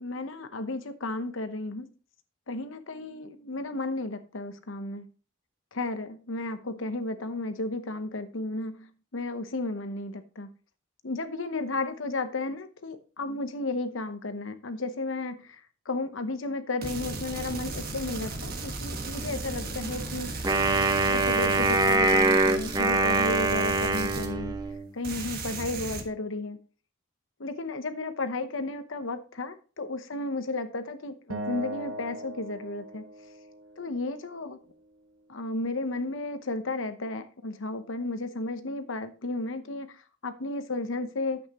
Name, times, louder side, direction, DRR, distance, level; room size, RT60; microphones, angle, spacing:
voice 1, 0.0-1.9 2.5-5.1 5.7-10.5 11.0-15.6 15.9-20.4 21.1-24.5 24.9-26.6 27.4-33.0 33.8-34.6 35.3-39.9 40.2-41.4, left 2 dB, 75° left, 10 dB, 0.9 m, -33 dB
sound 1, 16.8-24.8 25.0-26.0, right 2 dB, 45° right, 1.4 m, -36 dB
Wind instrument woodwind instrument, 20.4-24.9, right 2 dB, 20° right, 0.8 m, -24 dB
Acoustic guitar, 31.3-34.5, right 1 dB, 85° right, 0.9 m, -39 dB
9.7 x 8.0 x 3.0 m, 0.37 s
head